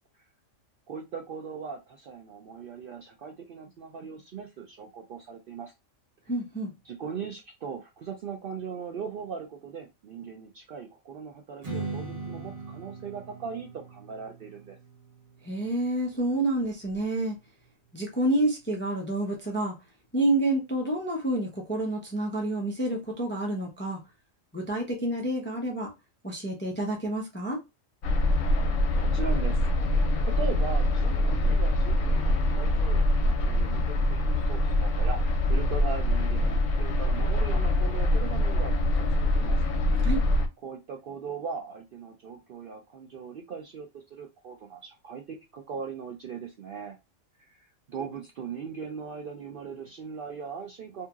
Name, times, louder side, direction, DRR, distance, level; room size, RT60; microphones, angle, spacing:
voice 1, 0.9-5.7 6.8-14.8 29.0-29.6 30.2-39.6 40.6-47.0 47.4-51.1, right 6 dB, 65° right, 0.5 m, -39 dB
voice 2, 6.3-6.7 15.4-17.4 17.9-19.7 20.1-24.0 24.5-25.9 26.2-27.6 40.0-40.2, right 1 dB, 15° left, 0.4 m, -28 dB
Strum, 11.6-16.9, right 3 dB, 35° right, 0.9 m, -41 dB
sound 1, 28.0-40.5, left 1 dB, 70° left, 1.0 m, -24 dB
2.7 x 2.7 x 2.3 m
omnidirectional pair, 1.4 m